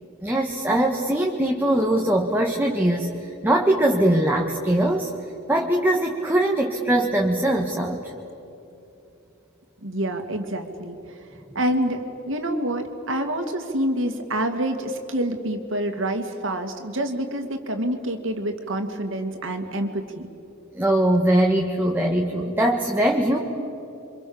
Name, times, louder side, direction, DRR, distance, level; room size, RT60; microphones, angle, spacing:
voice 1, 0.2-5.1 5.5-8.0 20.7-23.4, right 1 dB, 10° right, 0 dB, 1.7 m, -21 dB
voice 2, 9.8-11.0 11.5-12.0 12.3-20.2, right 1 dB, 70° right, 5 dB, 2.5 m, -27 dB
29.0 x 25.5 x 7.2 m, 2.9 s
head